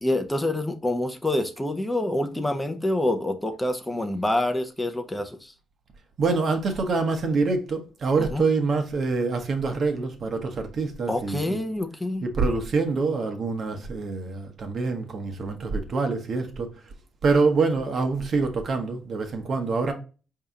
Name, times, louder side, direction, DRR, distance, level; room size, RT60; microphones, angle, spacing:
voice 1, 0.0-5.5 8.3-8.5 11.1-12.3, left 1 dB, 10° left, 0.6 m, -27 dB
voice 2, 6.2-11.6 12.2-16.7 17.2-19.9, right 4 dB, 55° right, 0.9 m, -25 dB
4.6 x 2.8 x 3.6 m
cardioid pair, 90°, 0 cm